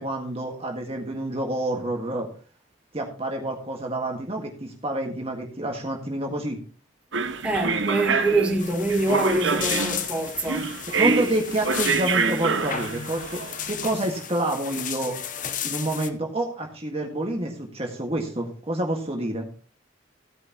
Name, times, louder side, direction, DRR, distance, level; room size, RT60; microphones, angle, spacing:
voice 1, 0.0-2.3 2.9-6.6 11.0-13.4 13.7-15.1 15.6-19.4, right 1 dB, 30° right, 1.7 m, -28 dB
sound 1, 7.1-13.8, right 4 dB, 70° right, 1.0 m, -26 dB
voice 2, 7.4-11.1, right 2 dB, 5° right, 1.8 m, -25 dB
sound 2, 8.6-16.1, left 8 dB, 40° left, 0.9 m, -34 dB
16.0 x 9.6 x 2.9 m
head